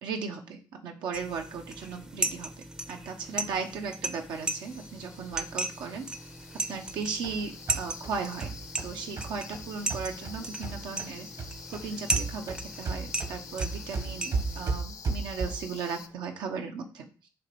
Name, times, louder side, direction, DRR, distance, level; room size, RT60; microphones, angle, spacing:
voice 1, 0.0-6.1 6.7-8.5 8.8-11.3 11.7-17.3, right 5 dB, 90° right, 4 dB, 1.0 m, -36 dB
sound 1, 1.1-14.7, right 2 dB, 10° right, 0.5 m, -37 dB
sound 2, 4.3-16.1, left 7 dB, 50° left, 0.6 m, -47 dB
sound 3, 6.9-11.1 11.4-15.8, right 4 dB, 60° right, 1.3 m, -35 dB
7.4 x 3.0 x 4.7 m, 0.38 s
cardioid pair, 105°, 8 cm